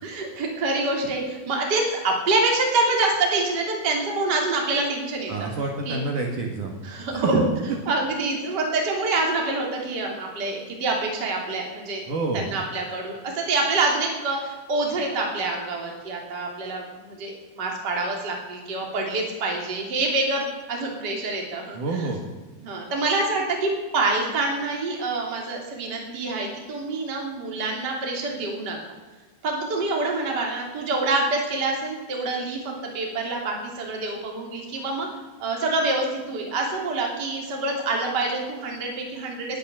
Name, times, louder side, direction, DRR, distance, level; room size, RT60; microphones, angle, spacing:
voice 1, 0.0-5.5 5.9-6.0 6.8-7.4 7.9-12.0 12.5-20.4 20.7-22.1 22.6-28.8 29.4-35.1 35.4-39.6, right 3 dB, 30° right, 0 dB, 3.0 m, -26 dB
voice 2, 5.3-6.8 7.1-7.3 12.1-12.5 21.7-22.2, right 3 dB, 55° right, 1 dB, 2.9 m, -28 dB
20.5 x 8.0 x 7.4 m, 1.3 s
omnidirectional pair, 4.7 m